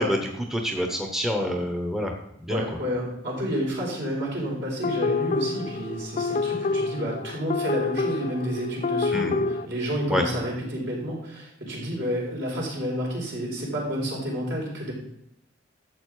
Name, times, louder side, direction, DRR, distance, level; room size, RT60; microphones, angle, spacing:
voice 1, 0.0-2.1 2.4-2.6 9.1-9.3 10.1-10.2, equal, ahead, 3 dB, 0.9 m, -26 dB
voice 2, 2.5-14.9, equal, 65° right, -3 dB, 4.3 m, -30 dB
sound 1, 4.8-9.7, left 4 dB, 40° left, 0.4 m, -27 dB
12.0 x 7.6 x 4.8 m, 0.80 s
head